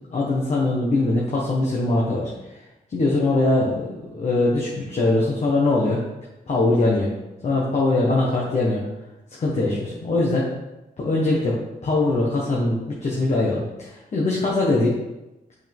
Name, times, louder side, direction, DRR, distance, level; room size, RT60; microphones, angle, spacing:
voice 1, 0.1-2.3 2.9-6.0 6.5-7.1 7.4-8.8 9.4-10.5 11.0-14.9, left 2 dB, 50° left, -4 dB, 1.5 m, -22 dB
8.6 x 5.6 x 3.6 m, 1.0 s
wide cardioid pair, 145°, 15 cm